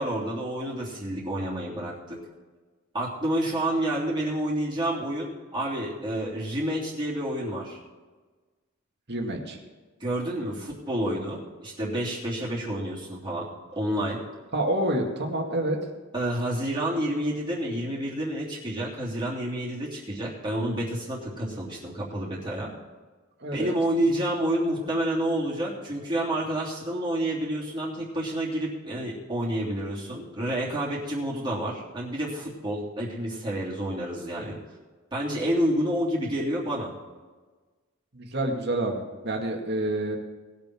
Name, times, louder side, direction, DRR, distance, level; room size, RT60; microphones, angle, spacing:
voice 1, 0.0-2.2 2.9-7.8 10.0-14.2 16.1-22.7 23.5-34.6 35.1-36.9, right 1 dB, 25° right, -6 dB, 3.1 m, -29 dB
voice 2, 9.1-9.6 14.5-15.8 23.4-23.7 38.1-40.2, right 1 dB, 55° right, 1 dB, 2.2 m, -28 dB
19.5 x 7.1 x 4.6 m, 1.3 s
head